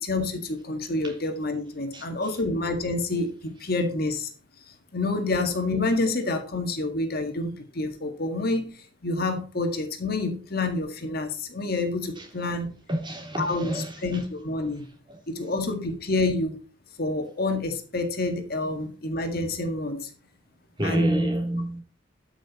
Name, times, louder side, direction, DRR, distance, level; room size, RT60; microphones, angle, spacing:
voice 1, 0.0-4.3 4.9-12.7 13.4-14.9 15.3-16.6 17.0-20.1 20.8-21.3, left 2 dB, 50° left, 1.9 m, -28 dB
voice 2, 12.9-14.2 20.8-21.8, right 1 dB, 25° right, 3.3 m, -28 dB
13.0 x 6.2 x 4.2 m
head